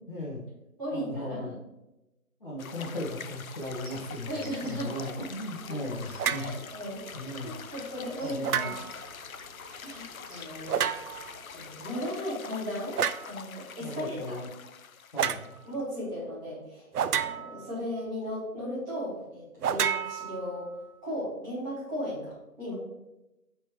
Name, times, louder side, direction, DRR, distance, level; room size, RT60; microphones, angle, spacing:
voice 1, 0.1-0.4 0.9-1.5 2.4-6.5 7.1-7.5 8.2-8.7 13.8-14.5 15.1-15.5, left 1 dB, 35° left, -5 dB, 0.9 m, -37 dB
voice 2, 0.8-1.5 4.3-5.1 6.4-8.9 9.8-11.2 11.5-13.0 13.2-14.4 15.6-20.7 21.0-22.7, equal, 15° right, -10 dB, 2.0 m, -36 dB
sound 1, 2.6-15.8, left 7 dB, 65° left, 0.5 m, -45 dB
sound 2, 3.6-11.9, right 2 dB, 55° right, 1.5 m, -53 dB
sound 3, 6.2-6.5 8.4-9.0 10.7-11.3 13.0-13.3 15.2-15.5 16.9-17.7 19.6-20.7, right 8 dB, 75° right, 0.5 m, -30 dB
8.9 x 3.5 x 3.1 m, 0.94 s
figure-of-eight pair, 160°, 45 cm